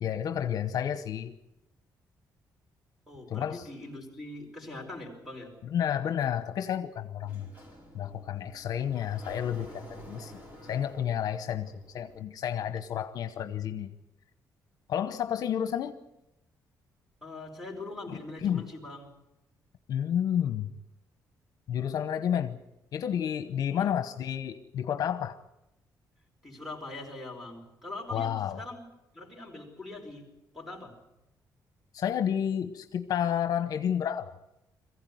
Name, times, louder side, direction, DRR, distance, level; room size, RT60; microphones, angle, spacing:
voice 1, 0.0-1.3 3.3-3.7 5.7-7.5 7.9-10.4 10.7-13.9 14.9-15.9 18.1-18.7 19.9-20.7 21.7-22.6 22.9-25.4 28.1-28.6 31.9-34.3, left 9 dB, 60° left, 1.0 m, -30 dB
voice 2, 3.1-5.5 17.2-19.1 23.6-23.9 26.4-28.8 29.1-30.3 30.5-31.0, left 2 dB, 5° right, 4.8 m, -42 dB
Sliding door, 7.2-12.2, equal, 20° right, 4.2 m, -50 dB
22.5 x 15.5 x 9.3 m
cardioid pair, 160°, 7 cm